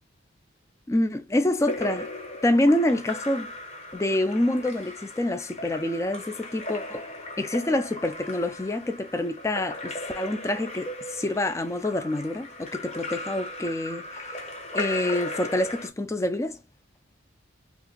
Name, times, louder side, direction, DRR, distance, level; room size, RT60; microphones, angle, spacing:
voice 1, 0.9-2.1 2.4-3.5 3.9-7.1 7.4-14.2 14.7-16.6, left 1 dB, 15° left, 0.3 m, -26 dB
Splash splatter / Drip / Trickle dribble, 1.6-15.9, left 1 dB, 35° left, 0.8 m, -37 dB
2.8 x 2.5 x 3.7 m
head